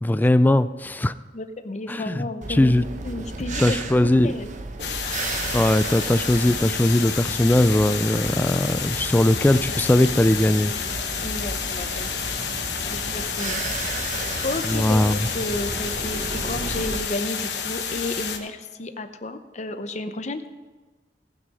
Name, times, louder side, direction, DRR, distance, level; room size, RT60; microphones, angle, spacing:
voice 1, 0.0-1.1 1.9-2.9 3.6-4.3 5.5-10.7 14.6-15.3, left 1 dB, 10° left, 13 dB, 0.3 m, -20 dB
voice 2, 1.3-2.7 3.0-4.5 8.6-8.7 11.2-12.1 12.9-13.6 14.1-20.4, left 2 dB, 40° left, 9 dB, 0.8 m, -32 dB
sound 1, 2.4-17.0, right 3 dB, 45° right, 0.9 m, -34 dB
sound 2, 4.8-18.4, left 7 dB, 75° left, 1.2 m, -30 dB
18.0 x 6.3 x 5.4 m, 1.3 s
head